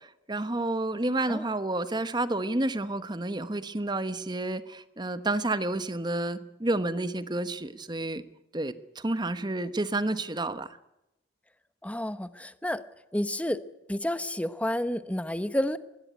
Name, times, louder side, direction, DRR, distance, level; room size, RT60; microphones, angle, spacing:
voice 1, 0.0-8.2 8.5-10.7, right 2 dB, 25° right, 12 dB, 1.1 m, -30 dB
voice 2, 11.8-12.8 13.1-13.6 13.9-15.8, left 1 dB, 10° left, 12 dB, 0.9 m, -30 dB
21.5 x 17.0 x 9.5 m, 0.91 s
head